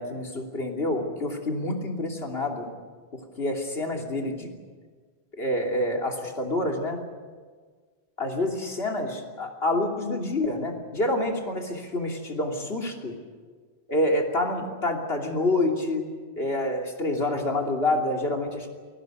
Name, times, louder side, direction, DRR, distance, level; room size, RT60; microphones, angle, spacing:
voice 1, 0.0-2.7 3.1-4.5 5.4-7.0 8.2-13.1 13.9-16.0 16.4-18.7, left 1 dB, 70° left, 2 dB, 3.2 m, -27 dB
22.5 x 17.5 x 9.4 m, 1.5 s
omnidirectional pair, 1.1 m